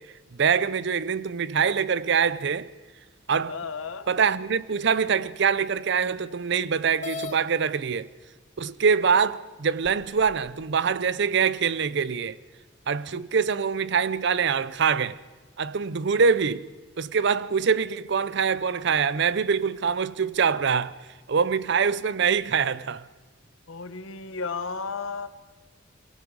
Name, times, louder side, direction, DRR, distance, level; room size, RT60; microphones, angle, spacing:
voice 1, 0.3-2.7 3.3-3.5 4.1-8.1 8.6-12.4 12.9-15.2 15.6-16.7 17.0-21.0 21.3-23.0, right 6 dB, 60° right, 0.5 m, -24 dB
voice 2, 3.5-4.1 23.7-25.3, left 4 dB, 75° left, 1.1 m, -33 dB
sound 1, 7.0-7.4 8.4-8.5 9.1-9.2 9.8-10.5, left 4 dB, 35° left, 0.8 m, -37 dB
24.0 x 22.5 x 4.7 m
head